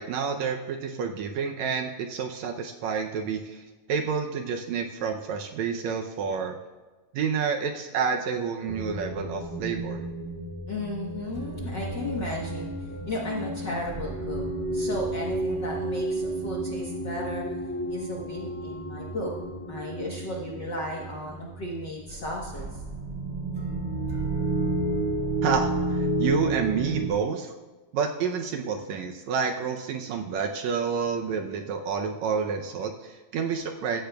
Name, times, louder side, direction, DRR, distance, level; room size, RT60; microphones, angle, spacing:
voice 1, 0.0-6.6 7.1-10.0 25.4-27.5 27.9-34.0, right 6 dB, 75° right, 4 dB, 1.8 m, -29 dB
sound 1, 8.7-27.1, right 2 dB, 25° right, 1.6 m, -31 dB
voice 2, 10.7-12.7 13.0-14.4 14.7-17.4 17.9-19.3 19.7-22.8, left 1 dB, 55° left, -3 dB, 1.3 m, -34 dB
15.5 x 13.5 x 2.3 m, 1.3 s
omnidirectional pair, 3.6 m